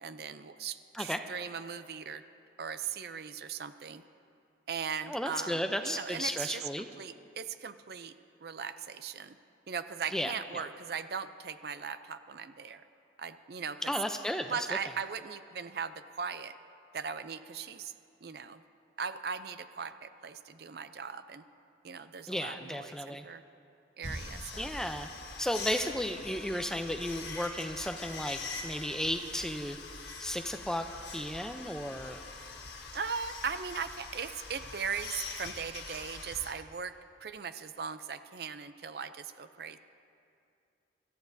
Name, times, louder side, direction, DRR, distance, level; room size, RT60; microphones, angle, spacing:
voice 1, 0.0-2.2 2.6-4.0 4.7-8.1 8.4-9.4 9.7-12.8 13.2-13.9 14.5-16.5 16.9-17.9 18.2-18.6 19.0-21.4 21.8-23.4 24.0-24.7 32.9-37.0 37.2-39.8, right 6 dB, 55° right, 11 dB, 0.5 m, -39 dB
voice 2, 5.1-6.9 10.1-10.6 13.8-14.6 22.3-23.3 24.6-25.1 25.4-29.8 30.2-30.9 31.1-32.2, equal, 5° left, 6 dB, 0.5 m, -34 dB
sound 1, 24.0-36.5, left 4 dB, 70° left, 1.7 m, -43 dB
25.5 x 14.0 x 2.7 m, 2.5 s
head